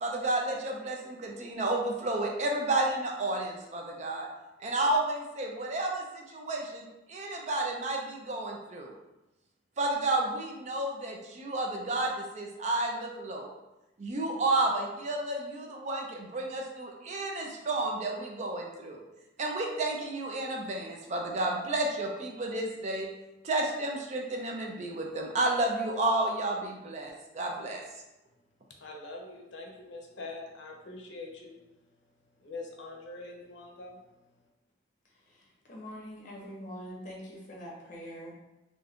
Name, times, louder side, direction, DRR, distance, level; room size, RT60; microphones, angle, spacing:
voice 1, 0.0-4.3 4.6-8.9 9.8-13.5 14.0-19.0 19.4-23.1 23.4-27.8, right 2 dB, 40° right, 1 dB, 0.4 m, -31 dB
voice 2, 28.8-31.6 32.4-34.0, left 3 dB, 75° left, 0 dB, 0.5 m, -43 dB
voice 3, 35.1-38.3, equal, 45° left, -3 dB, 0.8 m, -44 dB
2.6 x 2.3 x 3.4 m, 0.99 s
head